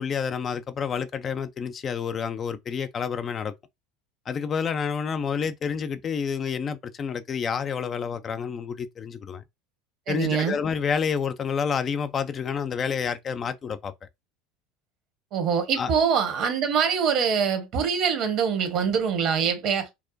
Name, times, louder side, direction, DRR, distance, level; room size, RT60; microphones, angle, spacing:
voice 1, 0.0-3.5 4.3-9.4 10.1-13.9 15.8-15.9, left 6 dB, 35° left, 0.4 m, -29 dB
voice 2, 10.1-10.6 15.3-19.9, right 7 dB, 50° right, 1.1 m, -24 dB
4.6 x 2.1 x 2.6 m
hypercardioid pair, 75°, 0 cm